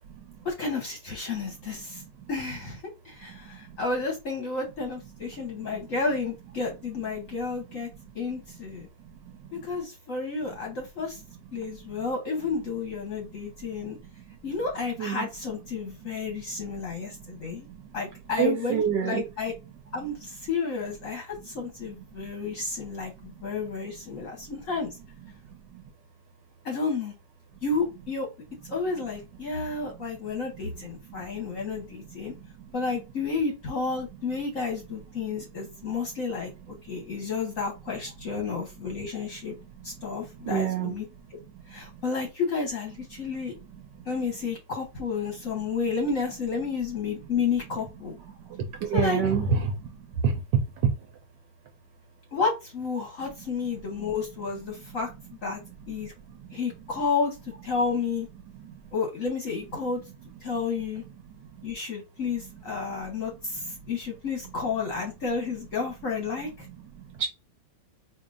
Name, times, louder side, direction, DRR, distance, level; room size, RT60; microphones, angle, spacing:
voice 1, 0.4-2.0 2.3-7.9 8.1-8.9 9.5-11.2 11.5-14.0 14.4-17.7 17.9-19.5 19.9-24.9 26.6-27.1 27.6-28.3 28.7-32.3 32.7-39.5 39.8-41.0 41.7-43.6 44.1-48.2 48.9-49.2 52.3-55.1 55.4-55.6 55.9-56.1 56.5-57.3 57.6-58.3 58.9-60.0 60.4-61.0 61.6-66.7, left 4 dB, 50° left, 1.0 m, -31 dB
voice 2, 18.4-19.2 40.5-40.9 48.9-49.7 50.2-50.3 67.2-67.3, right 7 dB, 75° right, 1.1 m, -25 dB
4.4 x 2.8 x 2.5 m
omnidirectional pair, 2.3 m